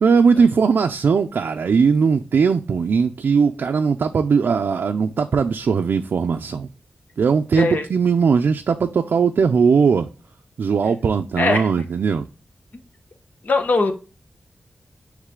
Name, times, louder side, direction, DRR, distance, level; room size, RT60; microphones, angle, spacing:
voice 1, 0.0-6.7 7.2-10.1 10.6-12.3, right 5 dB, 80° right, 0.5 m, -19 dB
voice 2, 11.4-11.7 13.4-13.9, left 3 dB, 55° left, 1.1 m, -20 dB
9.6 x 3.3 x 3.7 m
wide cardioid pair, 115°, 3 cm